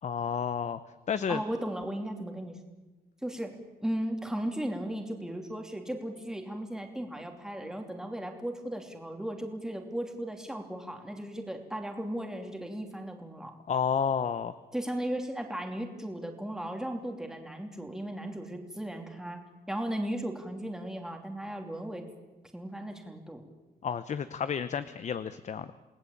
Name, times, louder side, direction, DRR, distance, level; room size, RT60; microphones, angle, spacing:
voice 1, 0.0-0.8 1.1-1.4 13.7-14.5 23.8-25.7, left 7 dB, 45° left, 13 dB, 0.9 m, -31 dB
voice 2, 1.3-2.6 3.2-13.6 14.7-19.4 19.7-22.0 22.5-23.4, right 1 dB, 5° right, 3 dB, 2.9 m, -36 dB
28.5 x 19.5 x 8.7 m, 1.2 s
wide cardioid pair, 160°, 16 cm